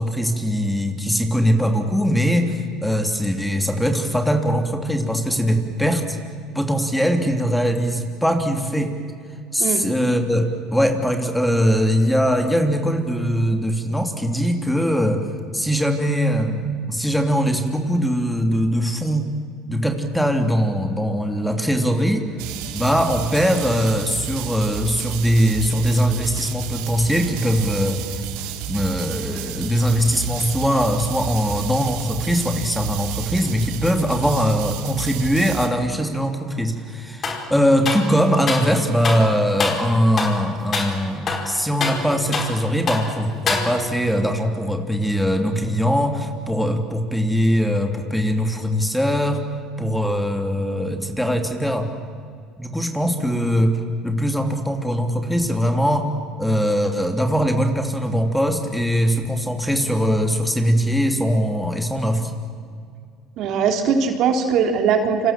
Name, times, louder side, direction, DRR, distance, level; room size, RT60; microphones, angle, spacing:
voice 1, 0.0-6.2 6.5-9.0 9.5-15.2 15.5-19.4 19.7-22.3 22.7-28.2 28.7-49.5 49.8-51.9 52.6-56.1 56.4-62.3, equal, 5° left, 5 dB, 3.2 m, -21 dB
sound 1, 22.4-35.7, right 10 dB, 80° right, 2.7 m, -31 dB
sound 2, 37.2-37.5 37.8-38.7 39.0-39.3 39.6-39.9 40.2-40.4 40.7-40.9 41.3-42.6 42.9-43.1 43.5-44.0, left 4 dB, 35° left, 4.8 m, -25 dB
voice 2, 63.4-65.3, right 6 dB, 60° right, 5 dB, 3.4 m, -20 dB
29.0 x 26.0 x 7.6 m, 2.2 s
supercardioid pair, 105°, 0 cm